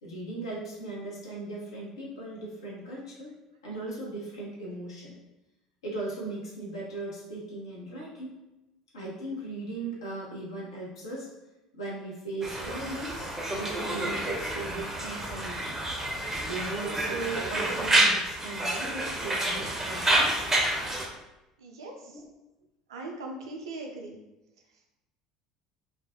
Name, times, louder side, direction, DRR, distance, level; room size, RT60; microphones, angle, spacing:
voice 1, 0.0-3.3 3.6-5.1 5.8-8.4 8.9-11.3 11.7-15.8 16.4-20.5 22.1-22.3, right 2 dB, 75° left, -4 dB, 0.7 m, -38 dB
Conversation, 12.4-21.1, right 1 dB, 15° right, 0.5 m, -28 dB
voice 2, 21.6-22.2 22.9-24.2, right 2 dB, 70° right, 1 dB, 0.4 m, -40 dB
2.4 x 2.1 x 2.5 m, 0.97 s
figure-of-eight pair, 65°, 3 cm